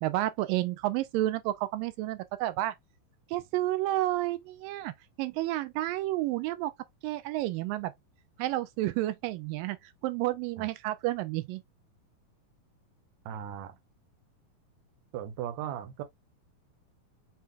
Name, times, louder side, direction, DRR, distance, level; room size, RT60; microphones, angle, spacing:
voice 1, 0.0-2.7 3.3-4.9 5.2-6.7 7.0-7.9 8.4-9.8 10.0-11.6, right 16 dB, 85° right, 2.3 m, -30 dB
voice 2, 13.3-13.8 15.1-16.0, right 10 dB, 70° right, 2.0 m, -37 dB
5.8 x 2.5 x 3.4 m
omnidirectional pair, 3.9 m